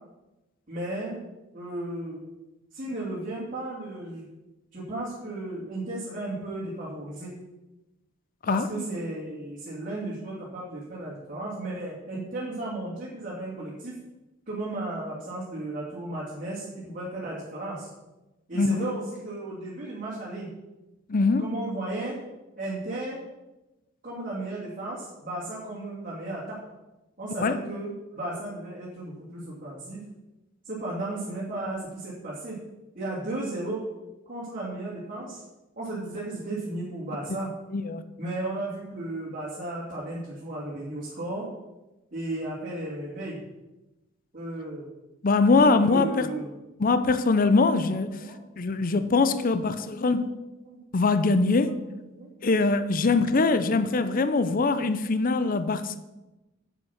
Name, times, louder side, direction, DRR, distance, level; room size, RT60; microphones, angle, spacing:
voice 1, 0.7-1.2 1.5-2.2 2.7-4.3 4.7-7.3 8.5-14.0 14.5-17.9 18.5-20.5 21.4-22.2 22.6-23.2 24.0-26.6 27.2-30.0 30.6-32.6 32.9-33.8 34.3-35.4 35.8-37.5 38.2-41.5 42.1-43.4 44.3-44.9 45.5-46.6 47.5-47.6 47.9-48.4 49.7-50.2 50.7-50.8 51.6-52.3 53.1-53.4, right 2 dB, 40° right, -7 dB, 2.6 m, -35 dB
voice 2, 21.1-21.5 27.4-27.6 37.7-38.0 45.2-46.3 46.8-48.2 48.6-50.4 50.9-51.8 52.4-56.0, left 3 dB, 40° left, 11 dB, 0.5 m, -22 dB
9.3 x 8.0 x 5.8 m, 1.0 s
head